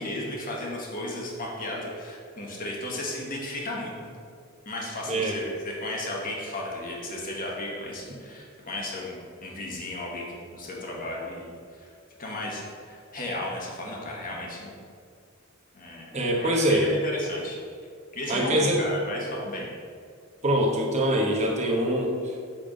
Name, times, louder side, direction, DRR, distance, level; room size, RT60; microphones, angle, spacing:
voice 1, 0.0-4.1 4.6-11.5 11.8-11.9 12.2-14.8 15.7-17.6 18.1-19.7, left 1 dB, 40° left, -2 dB, 1.3 m, -34 dB
voice 2, 16.1-16.9 18.3-18.8 20.4-22.5, right 1 dB, 30° right, -2 dB, 1.1 m, -24 dB
7.4 x 3.5 x 5.2 m, 2.2 s
head